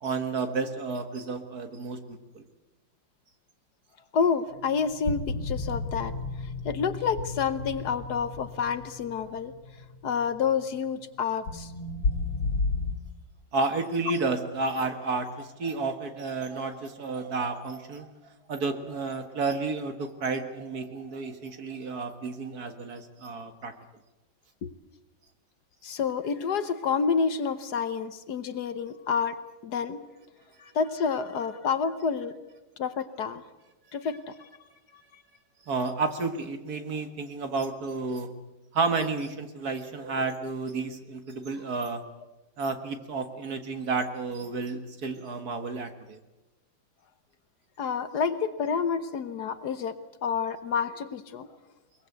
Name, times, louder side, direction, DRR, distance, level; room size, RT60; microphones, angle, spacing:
voice 1, 0.0-2.5 13.5-18.1 18.5-23.7 35.7-38.3 38.7-42.0 42.6-46.2, right 4 dB, 55° right, 7 dB, 2.1 m, -31 dB
voice 2, 4.1-6.1 6.6-9.5 10.0-11.7 24.6-24.7 25.8-30.0 30.6-32.3 32.8-33.4 33.9-34.5 47.8-50.0 50.2-51.5, left 6 dB, 60° left, 11 dB, 1.4 m, -29 dB
sound 1, 4.5-12.9, left 3 dB, 90° left, 2.7 m, -33 dB
22.5 x 21.5 x 8.0 m, 1.1 s
omnidirectional pair, 2.1 m